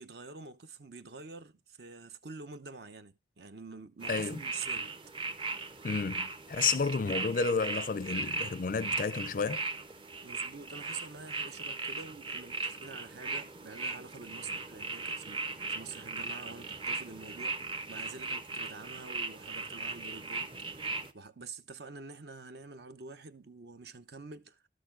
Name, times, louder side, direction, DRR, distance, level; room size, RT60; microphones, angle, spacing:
voice 1, 0.0-4.9 10.2-17.6 17.9-20.5 21.1-24.6, right 4 dB, 60° right, 0.8 m, -47 dB
sound 1, 4.0-21.1, right 3 dB, 25° right, 0.7 m, -38 dB
voice 2, 4.1-4.4 5.8-9.6, left 5 dB, 45° left, 0.4 m, -31 dB
12.5 x 6.6 x 3.8 m
head